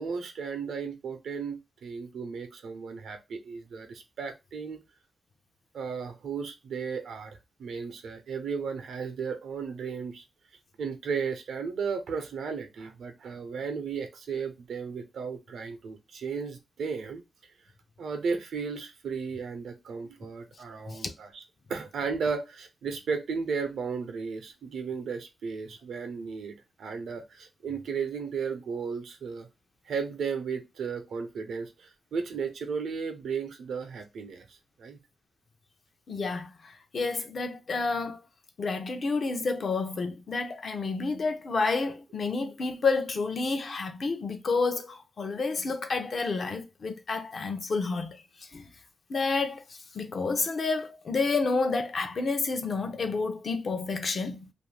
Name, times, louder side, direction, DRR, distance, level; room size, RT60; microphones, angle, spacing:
voice 1, 0.0-4.8 5.7-10.2 10.8-17.2 18.0-21.4 21.7-29.5 29.8-35.0, right 5 dB, 90° right, 0.6 m, -35 dB
voice 2, 36.1-38.2 38.6-48.2 48.5-48.7 49.1-49.6 49.9-54.5, left 4 dB, 55° left, 0.5 m, -30 dB
2.5 x 2.4 x 3.2 m
cardioid pair, 85°, 0 cm